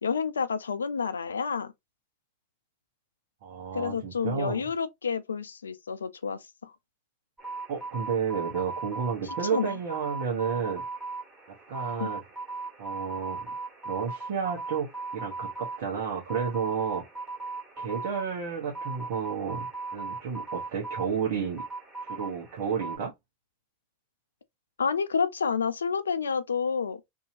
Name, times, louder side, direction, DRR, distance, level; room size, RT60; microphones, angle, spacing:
voice 1, 0.0-1.7 3.7-6.7 9.5-9.7 12.0-12.1 24.8-27.0, left 6 dB, 85° left, 0.3 m, -29 dB
voice 2, 3.4-4.7 7.7-10.8 11.7-12.2 12.8-13.5 13.8-17.0 17.8-21.6 22.1-23.1, right 6 dB, 60° right, 1.0 m, -31 dB
sound 1, 7.4-23.0, right 3 dB, 25° right, 1.7 m, -38 dB
2.8 x 2.7 x 2.6 m
hypercardioid pair, 95°, 0 cm